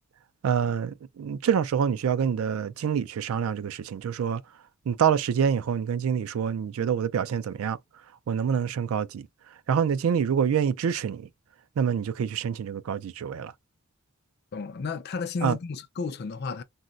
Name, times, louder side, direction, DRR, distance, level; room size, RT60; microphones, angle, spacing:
voice 1, 0.4-4.4 4.9-7.8 8.3-9.3 9.7-11.3 11.8-13.5 15.4-15.6, right 7 dB, 90° right, 0.4 m, -26 dB
voice 2, 14.5-16.6, left 4 dB, 50° left, 0.4 m, -32 dB
3.8 x 2.1 x 2.4 m
head